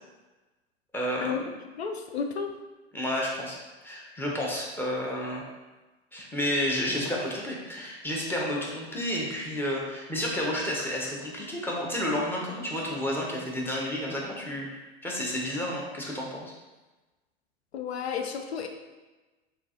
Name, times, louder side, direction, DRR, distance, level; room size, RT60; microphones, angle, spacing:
voice 1, 0.9-1.5 2.9-3.6 3.8-5.4 6.1-16.5, left 1 dB, 5° left, -3 dB, 0.9 m, -31 dB
voice 2, 1.8-2.5 17.7-18.7, left 6 dB, 80° left, 4 dB, 0.5 m, -32 dB
6.4 x 2.5 x 2.8 m, 1.2 s
figure-of-eight pair, 85°, 32 cm